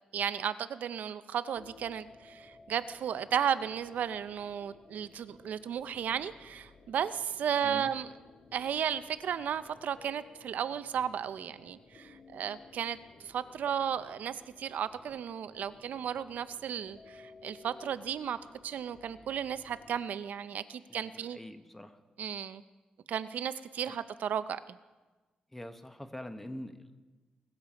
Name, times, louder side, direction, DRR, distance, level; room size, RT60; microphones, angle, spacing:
voice 1, 0.1-8.1 8.5-18.4 18.6-21.4 22.2-22.6 23.1-24.8, right 8 dB, 80° right, 13 dB, 0.5 m, -34 dB
sound 1, 1.5-20.0, left 4 dB, 50° left, 1.7 m, -57 dB
voice 2, 20.9-22.0 23.8-24.0 25.5-27.0, left 1 dB, 10° left, 8 dB, 0.8 m, -45 dB
21.0 x 7.3 x 4.9 m, 1.2 s
wide cardioid pair, 145°, 3 cm